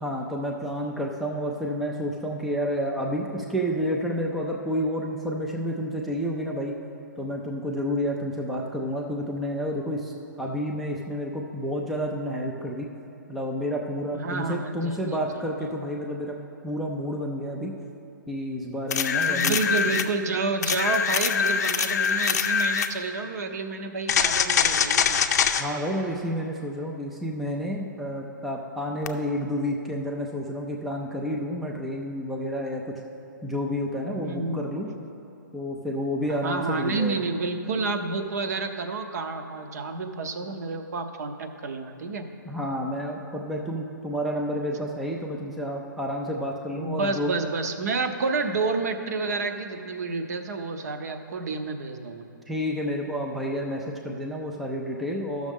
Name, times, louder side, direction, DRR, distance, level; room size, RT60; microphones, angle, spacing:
voice 1, 0.0-6.7 7.2-12.9 13.3-16.4 16.6-17.7 18.3-19.6 25.6-32.9 33.4-34.9 35.5-37.3 42.5-47.3 52.5-55.5, equal, ahead, -1 dB, 0.3 m, -30 dB
voice 2, 14.1-15.3 15.6-15.7 19.3-25.2 34.2-34.9 36.3-42.3 46.8-52.2, right 3 dB, 50° right, 6 dB, 0.7 m, -29 dB
sound 1, 18.9-20.1 20.6-22.9 24.1-25.6 29.1-29.2, left 7 dB, 55° left, 0.5 m, -23 dB
13.5 x 6.3 x 3.6 m, 2.9 s
hypercardioid pair, 150°, 11 cm